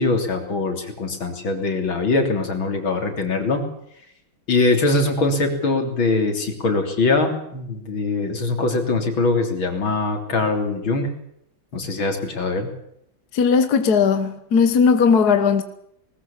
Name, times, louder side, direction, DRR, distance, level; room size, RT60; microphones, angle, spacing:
voice 1, 0.0-3.6 4.5-11.1 11.7-12.7, left 3 dB, 80° left, 4.1 m, -22 dB
voice 2, 13.3-15.6, left 6 dB, 55° left, 1.7 m, -17 dB
20.5 x 20.0 x 7.3 m
omnidirectional pair, 2.2 m